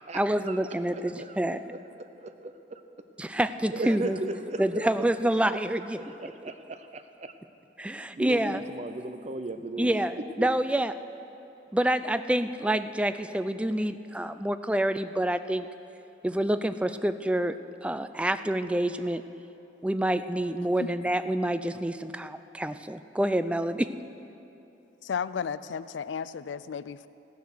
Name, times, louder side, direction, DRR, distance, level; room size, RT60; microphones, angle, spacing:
voice 1, 0.1-1.6 3.2-4.2 4.6-6.0 7.8-8.7 9.8-10.9 11.7-15.7 16.2-19.2 19.8-23.9, right 1 dB, 5° right, 11 dB, 0.3 m, -27 dB
voice 2, 0.9-1.4 2.0-2.8 3.7-5.0 6.0-7.3 8.1-9.9 10.4-10.5, right 2 dB, 40° right, 9 dB, 0.6 m, -36 dB
voice 3, 25.0-27.1, left 6 dB, 90° left, 16 dB, 0.4 m, -33 dB
15.0 x 10.0 x 6.4 m, 2.9 s
head